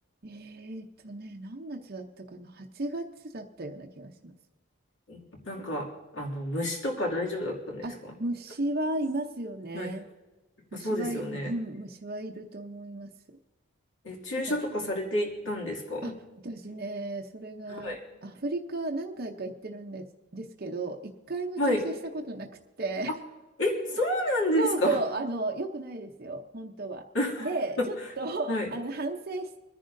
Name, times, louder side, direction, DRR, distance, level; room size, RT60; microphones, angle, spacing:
voice 1, 0.2-4.3 7.8-7.9 8.2-10.0 10.7-13.1 14.5-14.6 16.0-16.1 16.4-20.1 20.3-22.5 22.8-23.1 24.6-27.1 27.4-29.6, right 2 dB, 45° right, 2 dB, 0.7 m, -34 dB
voice 2, 5.5-8.1 9.7-9.9 10.7-11.5 14.0-16.2 17.7-18.0 21.6-21.8 23.1-23.2 23.6-25.0 27.1-27.5 27.8-27.9 28.5-28.7, left 1 dB, 65° left, -2 dB, 2.5 m, -30 dB
26.5 x 10.5 x 2.6 m, 1.2 s
head